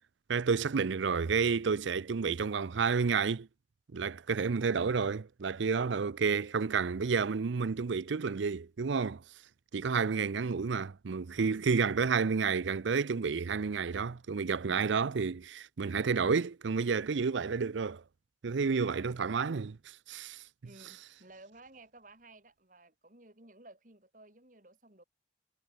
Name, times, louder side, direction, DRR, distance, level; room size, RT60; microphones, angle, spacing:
voice 1, 0.3-3.5 3.9-9.2 9.7-18.0 18.4-20.4, right 5 dB, 80° right, 0.5 m, -30 dB
voice 2, 19.0-19.3 20.6-25.0, right 2 dB, 45° right, 3.2 m, -56 dB
head